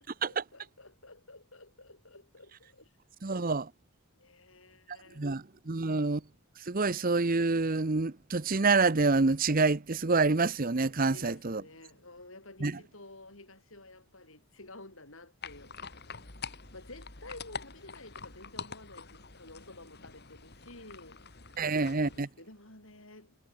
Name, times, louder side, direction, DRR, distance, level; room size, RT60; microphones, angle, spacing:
voice 1, 0.3-2.9 4.1-5.3 11.0-16.3 16.7-23.4, left 2 dB, 65° left, 7.8 m, -52 dB
voice 2, 3.2-3.7 5.2-6.2 6.6-11.6 12.6-12.8 21.6-22.3, right 3 dB, 40° right, 0.8 m, -27 dB
sound 1, 15.4-22.2, left 5 dB, 50° left, 3.2 m, -46 dB
head